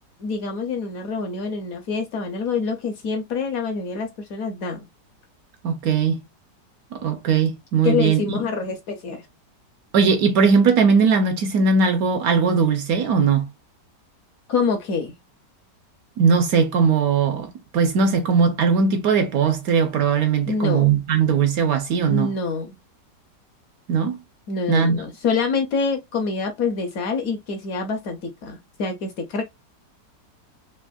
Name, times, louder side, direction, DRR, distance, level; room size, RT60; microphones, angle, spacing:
voice 1, 0.2-4.9 7.8-9.3 14.5-15.1 20.5-20.9 22.1-22.7 24.5-29.4, left 4 dB, 65° left, 0.9 m, -26 dB
voice 2, 5.6-6.2 6.9-8.4 9.9-13.5 16.2-22.3 23.9-24.2 24.7-25.0, right 5 dB, 70° right, 0.9 m, -19 dB
3.4 x 2.6 x 2.2 m
omnidirectional pair, 1.8 m